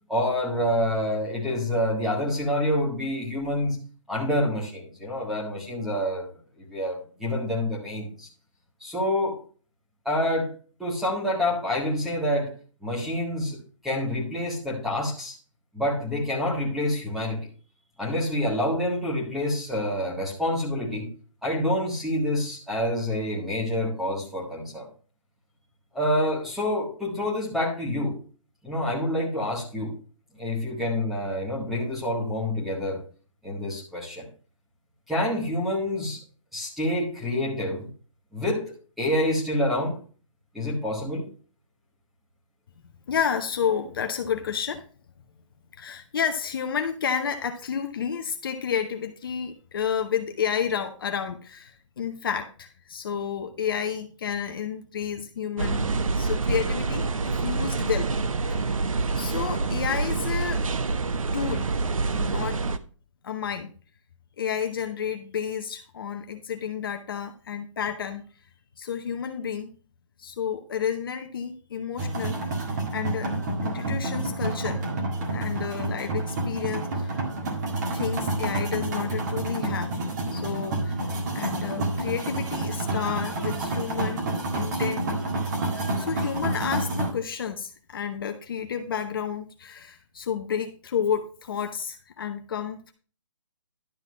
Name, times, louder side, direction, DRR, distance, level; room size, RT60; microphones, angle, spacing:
voice 1, 0.1-3.8 4.1-6.3 6.6-8.3 8.8-9.4 10.0-10.5 10.8-12.5 12.8-13.6 13.8-15.4 15.7-17.5 18.0-21.1 21.4-24.9 25.9-28.2 28.6-29.9 30.3-33.0 33.4-34.3 35.1-36.2 36.5-37.9 38.3-40.0 40.5-41.3, left 1 dB, ahead, -4 dB, 1.6 m, -27 dB
voice 2, 43.1-44.9 45.8-55.9 56.2-58.1 58.5-58.8 59.1-60.6 61.3-61.7 62.1-62.7 63.2-63.7 64.4-68.2 68.8-69.7 70.2-72.4 72.9-74.8 75.3-77.2 77.9-80.0 80.3-81.0 81.3-84.2 84.5-85.1 86.0-92.9, left 7 dB, 45° left, 5 dB, 0.8 m, -31 dB
sound 1, 55.6-62.8, right 3 dB, 90° right, 0.8 m, -27 dB
sound 2, 72.0-87.1, right 2 dB, 35° right, 1.8 m, -29 dB
11.5 x 3.9 x 6.2 m, 0.40 s
hypercardioid pair, 165°, 17 cm